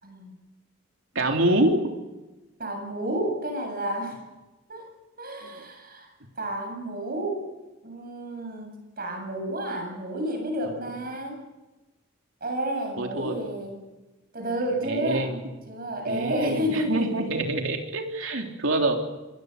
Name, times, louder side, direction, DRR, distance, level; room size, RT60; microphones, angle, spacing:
voice 1, 0.0-0.3 2.6-4.2 4.7-4.9 5.2-6.1 6.4-7.5 7.8-11.4 12.4-13.9 14.3-15.3 15.7-17.2, right 1 dB, 45° right, 3 dB, 7.8 m, -31 dB
voice 2, 1.2-1.9 5.5-5.6 10.7-10.9 13.0-13.4 14.8-15.5 16.1-19.0, right 1 dB, 65° right, 3 dB, 3.6 m, -26 dB
26.5 x 21.5 x 6.8 m, 1.1 s
head